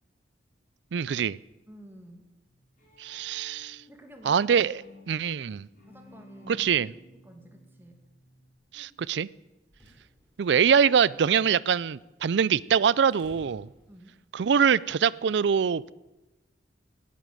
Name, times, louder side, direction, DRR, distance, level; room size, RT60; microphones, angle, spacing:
voice 1, 0.9-1.4 3.0-3.8 4.3-4.8 5.1-5.7 6.5-6.9 8.7-9.3 10.4-13.7 14.3-15.9, right 7 dB, 70° right, 0.4 m, -24 dB
voice 2, 1.7-2.3 3.9-4.5 5.1-5.3 5.9-6.7 7.2-8.0 8.7-8.9 13.9-14.2, equal, 10° right, 2.0 m, -51 dB
Bowed string instrument, 2.5-8.5, left 2 dB, 50° left, 5.3 m, -54 dB
sound 1, 9.5-14.5, equal, 10° left, 5.7 m, -59 dB
18.0 x 8.4 x 7.7 m
head